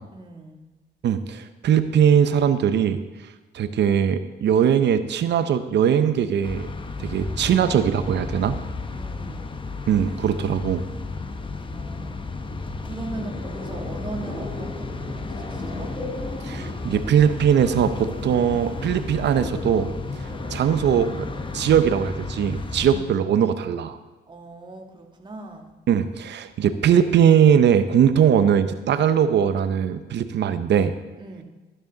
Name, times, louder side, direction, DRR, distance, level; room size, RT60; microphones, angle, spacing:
voice 1, 0.1-0.6 8.9-9.6 11.4-12.1 12.8-15.9 22.8-23.3 24.3-25.7 31.2-31.4, right 3 dB, 25° right, 2 dB, 1.6 m, -39 dB
voice 2, 1.0-3.0 3.5-6.7 7.0-8.6 9.9-10.8 16.4-19.9 20.5-21.3 21.5-24.0 25.9-30.9, right 8 dB, 60° right, 11 dB, 0.8 m, -20 dB
sound 1, 6.4-23.0, left 3 dB, 25° left, 0.9 m, -33 dB
sound 2, 13.1-21.8, left 1 dB, 40° left, 3.8 m, -38 dB
12.5 x 10.5 x 4.0 m, 1.2 s
cardioid pair, 90°, 20 cm